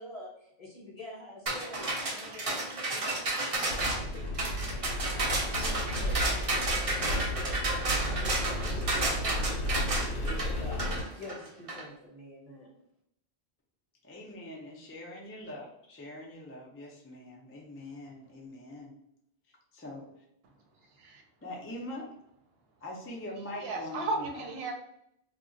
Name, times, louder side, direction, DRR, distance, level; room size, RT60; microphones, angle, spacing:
voice 1, 0.0-12.7, left 1 dB, 40° left, -3 dB, 0.9 m, -47 dB
sound 1, 1.5-11.8, right 2 dB, 45° right, 0.5 m, -32 dB
sound 2, 3.7-11.0, equal, 65° left, 0.7 m, -33 dB
voice 2, 14.0-18.9 19.7-20.1 21.4-22.1 22.8-24.4, left 1 dB, 20° left, -2 dB, 0.4 m, -43 dB
voice 3, 20.9-21.2 23.6-24.7, right 3 dB, 70° right, 3 dB, 0.8 m, -34 dB
2.3 x 2.1 x 3.7 m, 0.76 s
omnidirectional pair, 1.1 m